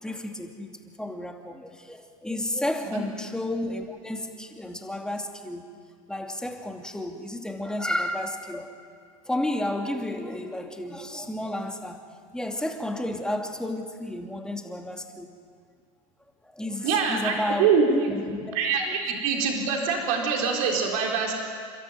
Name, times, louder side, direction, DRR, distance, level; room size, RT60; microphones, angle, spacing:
voice 1, 0.0-5.7 6.1-8.7 9.3-12.0 12.3-15.3 16.4-18.9, left 1 dB, 5° left, 3 dB, 2.6 m, -32 dB
voice 2, 16.8-18.1 18.5-21.3, right 5 dB, 70° right, 0 dB, 4.3 m, -24 dB
29.5 x 13.0 x 9.4 m, 2.2 s
hypercardioid pair, 105°, 18 cm